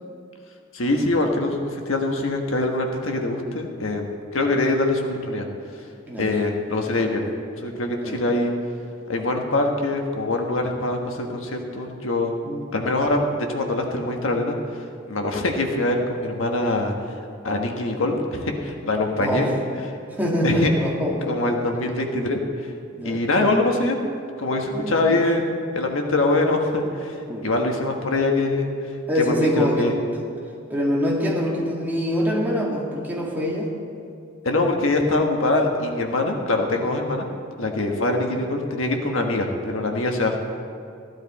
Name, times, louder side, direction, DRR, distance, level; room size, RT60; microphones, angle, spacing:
voice 1, 0.7-5.5 6.2-7.2 7.6-8.5 9.1-12.3 12.7-17.2 17.4-19.5 20.4-20.7 21.3-22.7 23.0-24.0 24.4-25.4 25.7-30.0 34.4-37.3 37.6-40.4, left 2 dB, 80° left, 2 dB, 1.4 m, -23 dB
voice 2, 19.2-19.5 20.1-21.6 23.0-23.2 24.7-25.2 27.3-27.5 29.1-29.9 30.7-33.7, equal, 10° right, -3 dB, 1.9 m, -24 dB
15.5 x 11.5 x 4.2 m, 2.5 s
head